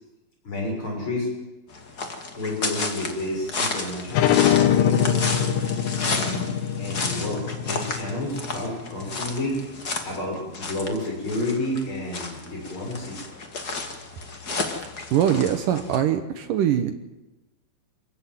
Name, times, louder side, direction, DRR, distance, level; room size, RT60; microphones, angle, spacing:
voice 1, 0.4-1.3 2.4-5.2 6.0-6.5 6.8-9.6 10.0-13.4 15.6-15.7, left 1 dB, 25° left, 0 dB, 7.3 m, -30 dB
sound 1, 1.7-16.0, left 3 dB, 55° left, 1.1 m, -32 dB
sound 2, 4.1-9.4, left 9 dB, 85° left, 3.7 m, -23 dB
voice 2, 15.1-16.9, right 10 dB, 85° right, 7 dB, 1.9 m, -22 dB
26.5 x 14.5 x 9.5 m, 1.0 s
omnidirectional pair, 5.4 m